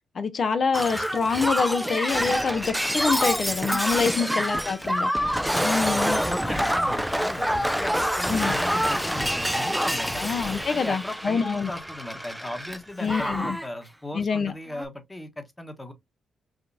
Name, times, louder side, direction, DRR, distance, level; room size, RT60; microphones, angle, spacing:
voice 1, 0.1-5.1 5.6-6.2 8.3-8.6 10.2-11.7 13.0-13.6 14.1-14.5, left 5 dB, 50° left, 0.6 m, -26 dB
Shatter, 0.7-12.8 13.1-13.7 14.7-14.9, equal, ahead, 0.4 m, -26 dB
voice 2, 4.1-4.6 5.4-10.3 10.7-15.9, left 1 dB, 15° left, 1.0 m, -38 dB
4.9 x 2.3 x 2.6 m
cardioid pair, 70°, 0 cm